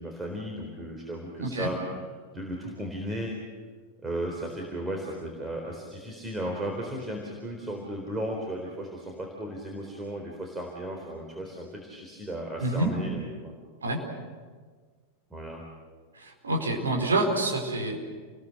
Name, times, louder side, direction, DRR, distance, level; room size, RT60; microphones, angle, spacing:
voice 1, 0.0-2.0 2.3-3.3 4.0-13.5 15.3-15.6, right 1 dB, 10° right, 0 dB, 4.1 m, -35 dB
voice 2, 1.4-1.7 12.6-12.9 13.8-14.0 16.2-18.0, right 2 dB, 70° right, 2 dB, 4.6 m, -27 dB
29.5 x 20.5 x 6.7 m, 1.5 s
figure-of-eight pair, 90°, 0 cm